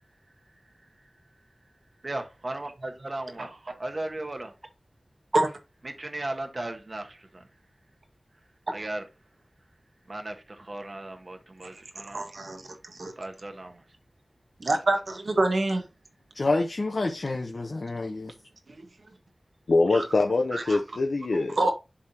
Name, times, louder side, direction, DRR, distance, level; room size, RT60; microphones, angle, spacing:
voice 1, 2.0-3.5 3.8-4.5 5.8-7.5 8.7-9.0 10.1-12.3 13.2-13.8, right 2 dB, 45° right, 1.4 m, -36 dB
voice 2, 12.1-12.7 13.0-13.1 14.6-15.8 18.8-18.9 19.9-20.0 20.5-20.8 21.5-21.7, right 2 dB, 70° right, 1.6 m, -26 dB
voice 3, 16.3-18.3, left 2 dB, 60° left, 1.0 m, -28 dB
voice 4, 19.7-21.7, left 3 dB, 85° left, 0.6 m, -24 dB
11.0 x 3.7 x 2.9 m
wide cardioid pair, 60°, 0 cm